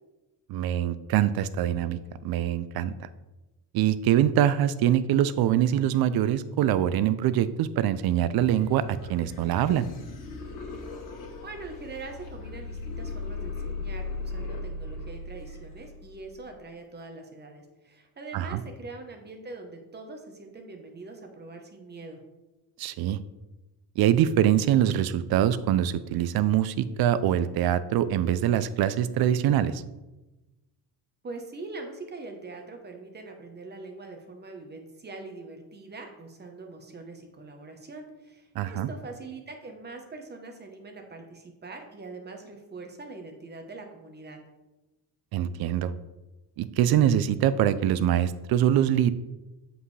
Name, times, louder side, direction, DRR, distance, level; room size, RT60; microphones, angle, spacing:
voice 1, 0.5-2.9 3.7-9.9 18.3-18.6 22.8-23.2 24.0-29.8 38.6-38.9 45.3-45.9 46.6-49.1, right 11 dB, 60° right, 15 dB, 0.5 m, -24 dB
sound 1, 8.4-16.4, left 3 dB, 45° left, 1.6 m, -38 dB
voice 2, 11.4-22.2 31.2-44.4, right 3 dB, 25° right, 3 dB, 1.0 m, -43 dB
7.5 x 5.3 x 3.3 m, 1.1 s
cardioid pair, 135°, 43 cm